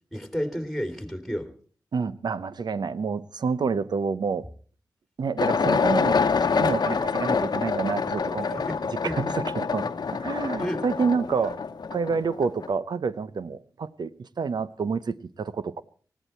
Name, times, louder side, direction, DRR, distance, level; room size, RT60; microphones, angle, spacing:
voice 1, 0.1-1.5 8.7-9.2 10.6-10.8, equal, ahead, 3.1 m, -31 dB
voice 2, 1.9-4.5 5.2-8.6 9.0-11.6 11.9-15.8, right 5 dB, 75° right, 0.8 m, -28 dB
sound 1, 5.4-12.7, left 5 dB, 75° left, 0.9 m, -26 dB
19.5 x 16.0 x 4.4 m
cardioid pair, 50°, 7 cm